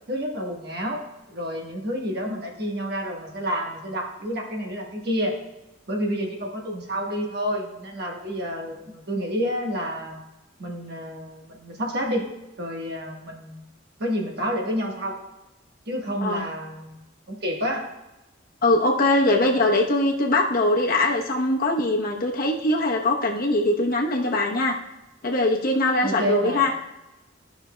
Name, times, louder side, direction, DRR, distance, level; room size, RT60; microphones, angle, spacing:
voice 1, 0.1-1.0 1.3-5.3 5.9-10.2 10.6-12.3 12.6-13.7 14.0-15.1 15.9-17.0 17.3-17.9 26.0-26.7, equal, 55° right, 0 dB, 1.3 m, -29 dB
voice 2, 18.6-24.8 25.2-26.7, left 2 dB, 50° left, 0 dB, 0.9 m, -22 dB
13.0 x 5.7 x 2.2 m, 0.99 s
head